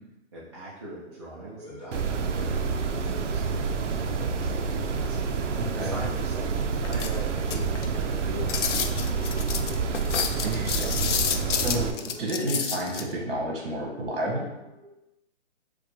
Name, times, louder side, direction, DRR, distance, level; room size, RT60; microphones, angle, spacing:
voice 1, 0.3-5.2 5.7-9.9, right 1 dB, 25° right, -9 dB, 0.4 m, -42 dB
sound 1, 1.1-14.8, left 1 dB, 5° right, 1.3 m, -45 dB
sound 2, 1.9-11.9, right 5 dB, 90° right, 0.5 m, -28 dB
voice 2, 5.6-5.9 10.4-11.1 11.6-14.5, right 1 dB, 50° right, -2 dB, 1.3 m, -30 dB
sound 3, 6.8-8.0 8.5-13.0, left 7 dB, 85° left, 0.5 m, -29 dB
4.7 x 2.2 x 3.1 m, 0.96 s
hypercardioid pair, 155°, 35 cm